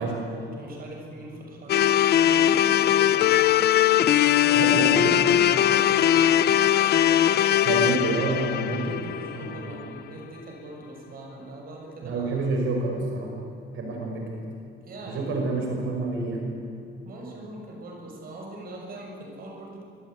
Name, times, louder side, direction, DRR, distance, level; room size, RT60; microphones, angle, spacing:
voice 1, 0.0-1.9 2.2-3.5 4.4-7.8 8.5-12.5 14.9-15.4 17.0-19.8, right 2 dB, 45° right, 0 dB, 6.7 m, -41 dB
sound 1, 1.7-9.8, left 11 dB, 50° left, 0.8 m, -20 dB
voice 2, 4.5-5.2 7.6-9.8 12.0-13.3 13.7-14.4 15.1-16.5, right 3 dB, 75° right, 1 dB, 5.6 m, -28 dB
25.5 x 23.5 x 9.3 m, 2.7 s
cardioid pair, 180°, 20 cm